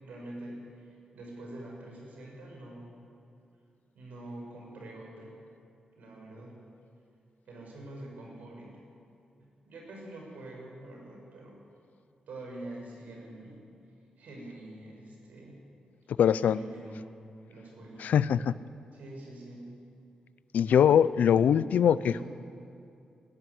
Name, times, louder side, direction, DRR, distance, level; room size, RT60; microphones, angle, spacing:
voice 1, 0.0-3.0 3.9-5.3 6.0-6.6 7.5-8.7 9.6-11.6 12.3-13.6 14.2-15.6 16.4-17.1 17.5-18.0 18.9-19.7 21.3-21.5 22.0-22.2, right 1 dB, 80° right, -1 dB, 6.2 m, -45 dB
voice 2, 16.2-16.6 18.0-18.5 20.5-22.2, left 8 dB, 90° left, 16 dB, 0.5 m, -22 dB
21.0 x 12.5 x 9.9 m, 2.5 s
wide cardioid pair, 175°, 3 cm